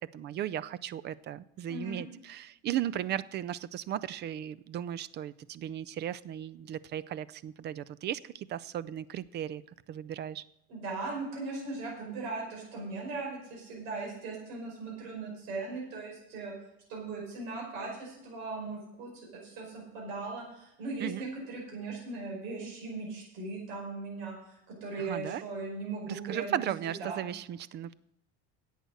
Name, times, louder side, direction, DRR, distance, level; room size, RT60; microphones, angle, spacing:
voice 1, 0.1-9.6 9.9-10.4 21.0-21.3 25.0-25.4 26.1-27.9, right 11 dB, 35° right, 19 dB, 0.4 m, -36 dB
voice 2, 1.7-2.0 10.7-16.5 16.9-26.7 27.0-27.3, right 3 dB, 85° right, -2 dB, 5.4 m, -38 dB
11.0 x 8.3 x 6.5 m, 0.84 s
cardioid pair, 130°, 29 cm